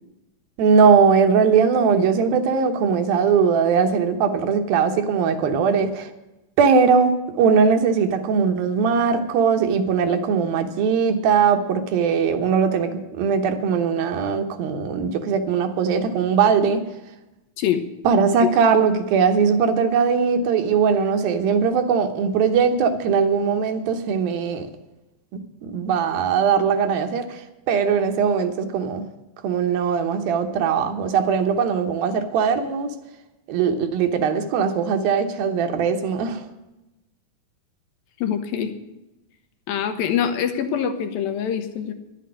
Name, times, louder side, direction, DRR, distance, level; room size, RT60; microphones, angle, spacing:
voice 1, 0.6-6.1 6.6-16.8 18.0-24.7 25.3-27.4 27.7-29.1 29.4-32.9 33.5-36.4, right 6 dB, 90° right, 6 dB, 3.0 m, -20 dB
voice 2, 38.2-38.8 39.7-41.9, left 9 dB, 85° left, 7 dB, 2.9 m, -24 dB
11.0 x 8.3 x 9.8 m, 1.0 s
omnidirectional pair, 4.1 m